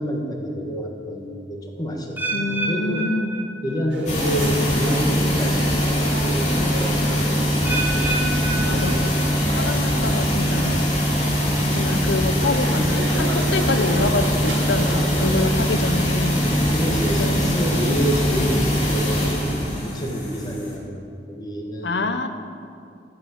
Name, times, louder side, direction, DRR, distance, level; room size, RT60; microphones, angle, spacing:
voice 1, 0.0-3.1 3.6-8.3 8.6-8.9 14.8-15.4 16.4-22.0, equal, 20° left, 1 dB, 1.4 m, -29 dB
sound 1, 2.2-4.2 4.4-4.9 5.5-5.6 7.6-9.6 9.9-10.4 11.0-11.1, right 3 dB, 10° right, 1.1 m, -30 dB
voice 2, 2.3-3.4 8.7-11.0 11.7-16.4 17.2-17.6 21.8-22.3, left 2 dB, 85° left, 8 dB, 0.8 m, -26 dB
sound 2, 3.9-15.4, right 1 dB, 80° right, 1.9 m, -34 dB
sound 3, 4.1-20.7, equal, 45° left, 2.5 m, -22 dB
14.0 x 5.9 x 7.5 m, 2.4 s
head